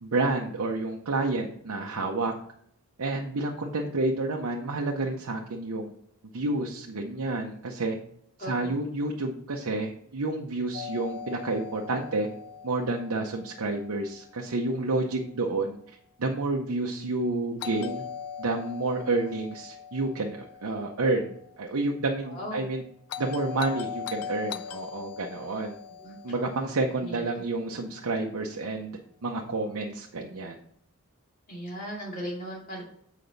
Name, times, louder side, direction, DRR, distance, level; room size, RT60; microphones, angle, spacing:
voice 1, 0.0-2.3 3.0-5.9 6.3-8.0 8.4-12.3 12.6-15.8 16.2-18.0 18.4-21.3 21.6-22.8 23.2-25.8 26.2-30.6, right 2 dB, 75° right, 1 dB, 0.7 m, -29 dB
voice 2, 8.4-8.8 22.2-22.6 26.0-26.2 27.0-27.4 31.5-32.8, equal, 40° left, -3 dB, 2.4 m, -37 dB
Doorbell, 10.7-14.7 17.6-21.8 23.1-27.5, left 7 dB, 90° left, 0.4 m, -40 dB
6.9 x 5.0 x 4.0 m, 0.68 s
head